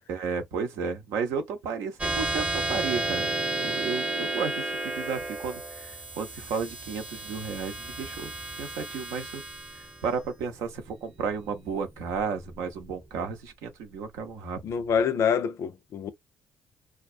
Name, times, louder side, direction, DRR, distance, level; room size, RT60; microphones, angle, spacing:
voice 1, 0.1-3.3 3.6-8.3 8.6-9.4 10.0-14.6, right 5 dB, 80° right, 0.7 m, -33 dB
sound 1, 2.0-12.8, right 2 dB, 25° right, 0.9 m, -33 dB
voice 2, 14.6-16.1, left 7 dB, 60° left, 0.4 m, -26 dB
2.3 x 2.2 x 2.3 m
supercardioid pair, 55°, 5 cm